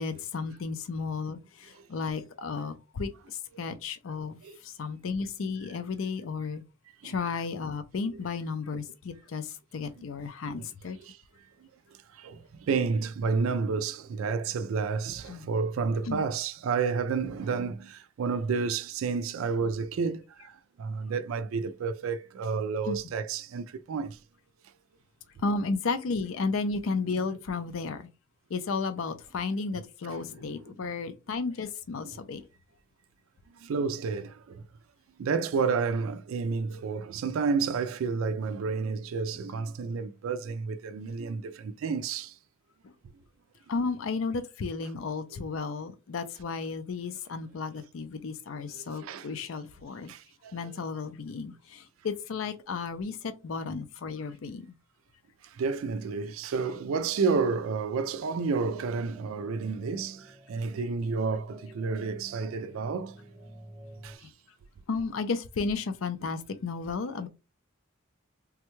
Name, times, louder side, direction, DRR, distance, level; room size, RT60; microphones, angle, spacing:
voice 1, 0.0-6.6 7.0-11.0 15.3-15.4 16.1-16.2 22.9-23.0 25.4-28.1 28.5-32.4 43.7-50.1 50.5-54.7 64.9-67.3, left 4 dB, 75° left, 0.4 m, -33 dB
voice 2, 12.1-24.2 30.5-30.8 33.5-34.6 35.2-42.4 48.7-49.3 50.1-50.7 55.4-63.2 64.0-64.3, right 5 dB, 80° right, 0.3 m, -31 dB
sound 1, 58.3-64.2, right 1 dB, 15° right, 0.5 m, -51 dB
3.5 x 2.2 x 3.0 m
head